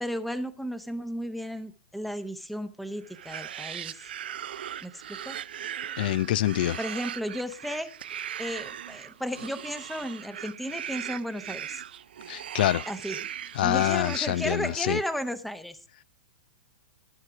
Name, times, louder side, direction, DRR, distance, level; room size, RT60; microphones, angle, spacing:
voice 1, 0.0-4.1 4.8-5.4 6.8-7.9 8.4-11.8 12.9-13.2 13.6-15.8, equal, ahead, 0.8 m, -34 dB
sound 1, 3.0-15.1, right 10 dB, 75° right, 0.4 m, -39 dB
voice 2, 6.0-6.8 12.3-12.9 13.5-15.0, left 13 dB, 60° left, 0.4 m, -26 dB
13.0 x 6.6 x 4.8 m
hypercardioid pair, 120°, 5 cm